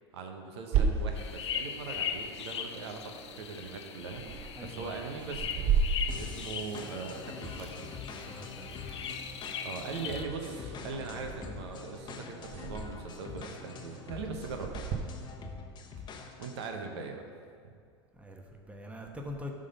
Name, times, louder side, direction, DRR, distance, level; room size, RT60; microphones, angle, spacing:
voice 1, 0.1-5.5 6.2-8.0 8.6-8.8 9.6-14.8 16.4-17.2, right 4 dB, 75° right, 4 dB, 1.0 m, -40 dB
sound 1, 0.7-15.0, right 5 dB, 50° right, 1.2 m, -36 dB
sound 2, 1.2-10.3, left 7 dB, 85° left, 0.6 m, -40 dB
voice 2, 4.5-4.9 8.3-8.8 15.4-16.1 18.1-19.5, left 1 dB, 10° right, 2 dB, 1.0 m, -44 dB
sound 3, 6.1-16.7, left 5 dB, 30° left, 0.9 m, -45 dB
11.5 x 3.8 x 5.3 m, 2.2 s
hypercardioid pair, 90°, 14 cm